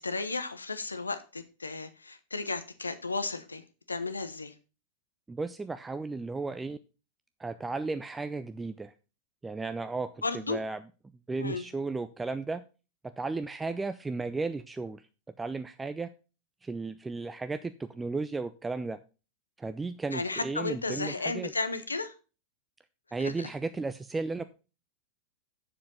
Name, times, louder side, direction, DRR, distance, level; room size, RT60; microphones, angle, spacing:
voice 1, 0.0-4.5 10.2-10.6 11.4-11.7 20.1-22.1 23.2-23.5, left 3 dB, 80° left, 1.0 m, -34 dB
voice 2, 5.3-6.8 7.4-8.9 9.4-10.8 11.3-12.6 13.0-15.1 15.4-16.1 16.6-19.0 19.6-21.5 23.1-24.4, right 3 dB, 10° right, 0.5 m, -34 dB
7.4 x 6.6 x 5.6 m
figure-of-eight pair, 90°, 0 cm